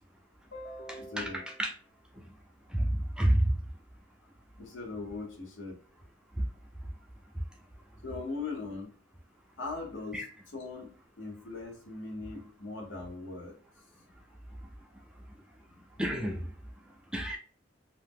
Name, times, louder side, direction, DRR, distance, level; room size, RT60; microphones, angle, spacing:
voice 1, 0.5-1.6 4.6-5.8 8.0-8.9 9.6-13.6 14.0-14.1 15.7-15.8, left 3 dB, 65° left, 0.8 m, -40 dB
voice 2, 1.2-1.7 2.2-2.3 2.7-3.5 6.4-6.5 10.1-10.2 16.0-16.5 17.1-17.4, right 1 dB, 5° right, 0.3 m, -29 dB
2.7 x 2.0 x 3.4 m
head